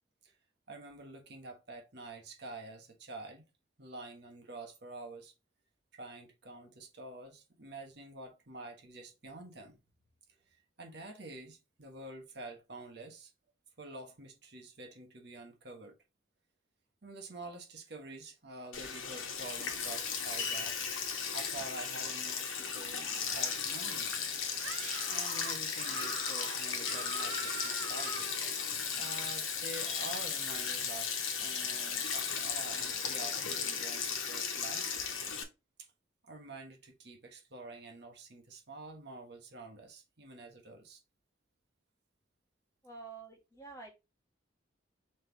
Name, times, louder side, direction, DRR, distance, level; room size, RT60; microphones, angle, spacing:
voice 1, 0.7-3.4 3.8-5.3 5.9-9.8 10.8-13.3 13.8-15.9 17.0-20.7 21.3-23.1 23.3-24.3 24.7-28.3 29.0-31.1 31.4-35.1 36.2-41.0, right 2 dB, 55° right, 1.2 m, -48 dB
Sink (filling or washing), 18.7-35.4, left 6 dB, 85° left, 1.0 m, -36 dB
Screaming, 24.6-28.5, right 2 dB, 80° right, 1.2 m, -42 dB
voice 2, 42.8-43.9, right 4 dB, 15° left, 1.1 m, -48 dB
3.5 x 3.3 x 4.4 m
head